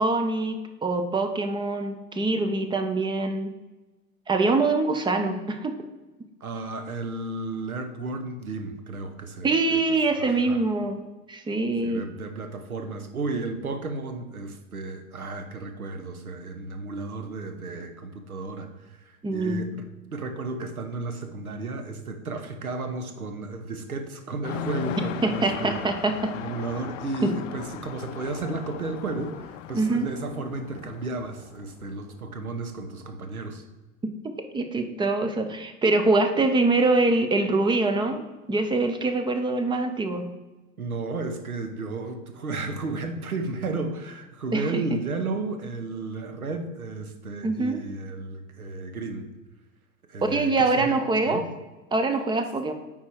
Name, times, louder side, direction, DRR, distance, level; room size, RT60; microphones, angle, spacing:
voice 1, 0.0-3.5 4.3-5.7 9.4-11.0 11.3-12.0 19.2-19.6 25.2-26.3 27.2-27.3 29.7-30.1 34.0-38.2 38.5-40.3 44.5-44.8 47.4-47.8 50.2-51.4 51.9-52.7, right 3 dB, 10° right, 7 dB, 0.6 m, -24 dB
voice 2, 6.4-9.8 10.2-10.6 11.8-19.8 20.1-25.9 26.3-33.6 40.8-49.3 50.1-50.9 51.3-51.4, right 3 dB, 80° right, 7 dB, 1.0 m, -33 dB
sound 1, 24.4-32.7, left 10 dB, 60° left, 0.5 m, -38 dB
9.4 x 3.8 x 4.6 m, 1.1 s
figure-of-eight pair, 85°, 43 cm